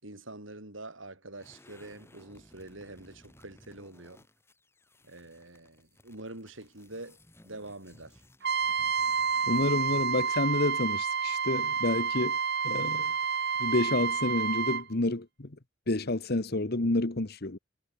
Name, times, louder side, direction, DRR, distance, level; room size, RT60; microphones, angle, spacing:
voice 1, 0.0-4.2 5.0-7.2 7.4-8.2, right 2 dB, 70° right, 6.2 m, -45 dB
sound 1, 1.3-10.4, left 1 dB, 10° left, 7.4 m, -59 dB
Trumpet, 8.4-14.8, right 6 dB, 55° right, 2.3 m, -29 dB
voice 2, 9.5-12.4 12.6-13.1 13.6-15.6 15.9-17.6, left 2 dB, 50° left, 1.3 m, -29 dB
head